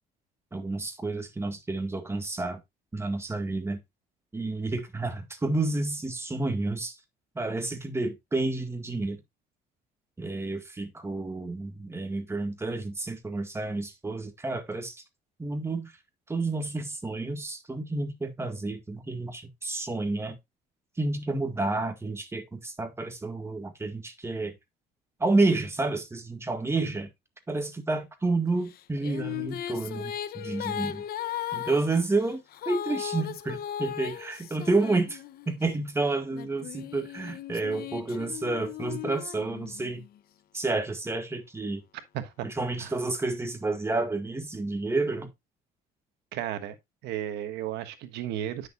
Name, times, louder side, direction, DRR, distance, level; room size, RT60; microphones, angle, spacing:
voice 1, 0.5-2.6 2.9-3.8 4.3-7.0 7.4-9.2 10.2-15.0 15.4-15.9 16.3-20.4 21.0-24.5 25.2-27.1 27.5-31.0 31.5-40.0 40.5-41.8 42.4-45.3, right 3 dB, 15° right, 1.8 m, -30 dB
Female singing, 28.7-35.6 36.3-40.1, left 11 dB, 65° left, 0.8 m, -37 dB
voice 2, 42.1-42.5 42.8-42.9 46.3-46.7 47.0-48.7, right 11 dB, 85° right, 1.3 m, -34 dB
9.4 x 6.6 x 2.5 m
cardioid pair, 110°, 17 cm